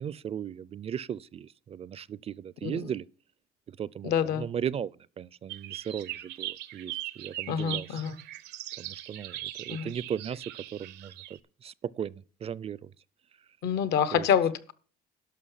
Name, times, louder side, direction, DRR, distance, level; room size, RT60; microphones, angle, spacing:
voice 1, 0.0-3.1 3.7-8.0 8.8-10.4 10.7-12.9 14.1-14.3, right 8 dB, 35° right, 0.4 m, -37 dB
voice 2, 4.0-4.5 7.5-8.2 9.7-9.9 13.6-14.7, left 8 dB, 75° left, 1.0 m, -27 dB
sound 1, 5.5-11.4, right 15 dB, 85° right, 0.8 m, -40 dB
11.5 x 5.9 x 5.6 m
cardioid pair, 110°, 17 cm